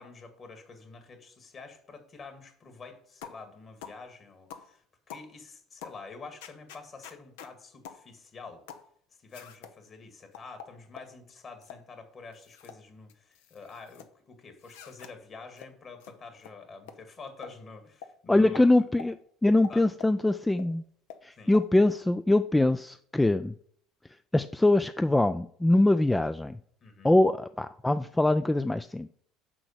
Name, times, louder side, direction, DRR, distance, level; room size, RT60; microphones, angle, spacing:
voice 1, 0.0-8.6 9.2-18.9 19.7-19.9 21.4-21.5 26.8-27.2, left 4 dB, 40° left, 6 dB, 2.2 m, -47 dB
sound 1, 3.2-3.4 3.8-4.0 4.5-4.7 5.1-5.3 5.8-6.0 6.4-7.5 7.8-8.0 8.7-8.9 9.3-9.7 10.3-11.1 11.6-11.8 12.3-12.8 13.1-14.1 14.6-15.1 15.6-15.7 16.0-16.1 16.4-16.5 16.9-17.0 17.4-17.6 18.0-18.1 18.5-18.7 19.0-19.1 19.6-20.2 20.6-20.7 21.1-21.2 21.5-21.7, left 8 dB, 70° left, 0.7 m, -46 dB
voice 2, 18.3-19.2 19.4-20.8 21.2-23.5 24.3-26.6 27.0-29.1, left 2 dB, 10° left, 11 dB, 0.4 m, -23 dB
6.1 x 4.7 x 6.7 m, 0.62 s
hypercardioid pair, 65°, 0 cm